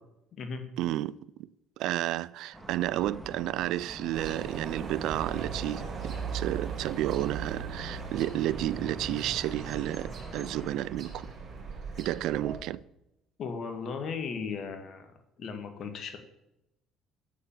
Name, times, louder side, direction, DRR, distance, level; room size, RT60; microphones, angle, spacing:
voice 1, 0.8-1.5 1.8-11.3 12.0-12.8, right 14 dB, 65° right, 0.4 m, -31 dB
sound 1, 2.5-10.7, right 1 dB, 5° right, 2.0 m, -47 dB
sound 2, 4.1-12.6, right 5 dB, 45° right, 3.8 m, -38 dB
voice 2, 13.4-15.1 15.4-16.2, left 5 dB, 55° left, 1.9 m, -36 dB
8.2 x 7.3 x 7.2 m
hypercardioid pair, 60°, 0 cm